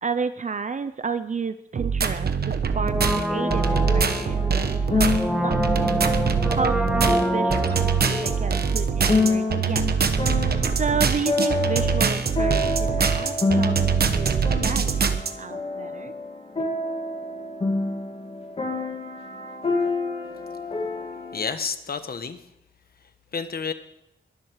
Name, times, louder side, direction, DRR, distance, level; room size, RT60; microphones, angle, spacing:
voice 1, 0.0-5.1 5.4-6.0 6.5-9.9 10.8-13.8 14.1-16.2, right 5 dB, 40° right, 12 dB, 0.6 m, -31 dB
sound 1, 1.8-15.3, right 6 dB, 55° right, 1.1 m, -23 dB
Brass instrument, 2.7-9.6 9.8-9.9, right 1 dB, 5° right, 1.7 m, -27 dB
sound 2, 3.4-21.4, left 3 dB, 30° left, 2.4 m, -28 dB
voice 2, 21.3-22.5 23.0-23.7, left 5 dB, 55° left, 9 dB, 1.2 m, -31 dB
22.0 x 7.7 x 6.5 m, 0.85 s
wide cardioid pair, 170°, 19 cm